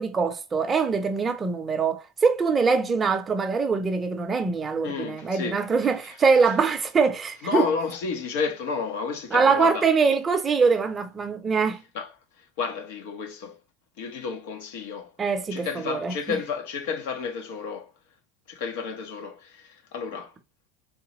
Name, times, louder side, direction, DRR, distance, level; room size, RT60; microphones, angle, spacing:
voice 1, 0.0-7.7 9.3-11.8 15.2-16.1, right 5 dB, 20° right, 0.5 m, -23 dB
voice 2, 4.8-5.6 7.4-9.9 11.9-12.1 12.4-13.6 14.0-15.1 15.5-17.9 18.5-20.3, left 5 dB, 75° left, 0.9 m, -31 dB
3.8 x 3.2 x 2.8 m
cardioid pair, 160°, 0 cm